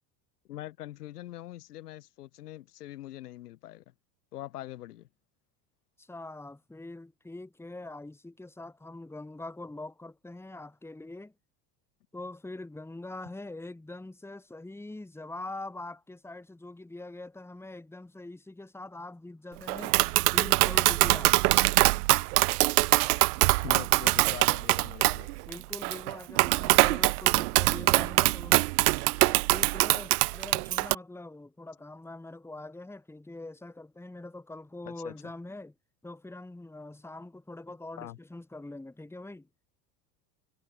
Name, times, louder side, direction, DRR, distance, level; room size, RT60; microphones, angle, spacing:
voice 1, 0.5-3.8 4.3-5.1 23.6-25.3 34.9-35.1 38.0-38.2, left 14 dB, 90° left, 1.9 m, -43 dB
voice 2, 6.0-11.3 12.1-20.0 20.3-21.4 25.5-28.6 29.2-35.7 36.0-39.5, left 2 dB, 5° left, 1.6 m, -43 dB
Tap, 19.7-30.9, right 23 dB, 80° right, 0.6 m, -23 dB
hypercardioid pair, 90°, 45 cm